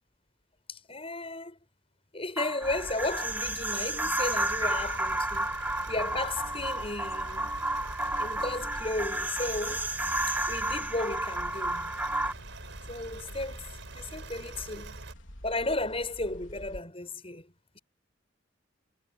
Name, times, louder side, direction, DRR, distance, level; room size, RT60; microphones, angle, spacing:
voice 1, 0.7-1.6 2.1-5.5 5.9-7.5 8.2-9.9 10.3-11.9 12.9-15.0 15.4-17.8, left 2 dB, 30° left, 7.7 m, -34 dB
sound 1, 2.4-12.3, right 1 dB, 10° right, 2.3 m, -31 dB
sound 2, 2.6-16.8, equal, 90° left, 4.2 m, -47 dB
sound 3, 4.3-15.1, right 3 dB, 90° right, 4.9 m, -46 dB
head